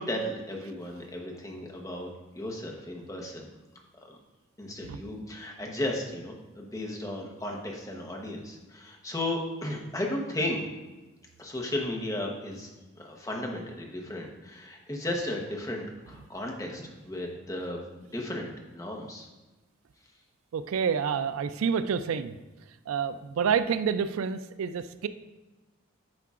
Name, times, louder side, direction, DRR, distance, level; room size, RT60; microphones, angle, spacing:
voice 1, 0.0-2.1 2.3-3.5 4.0-4.2 4.6-10.7 11.4-12.7 13.0-17.8 18.1-19.3, left 1 dB, 15° left, -1 dB, 0.9 m, -34 dB
voice 2, 20.5-22.3 22.9-25.1, right 7 dB, 90° right, 12 dB, 0.4 m, -28 dB
9.5 x 5.6 x 2.5 m, 1.1 s
head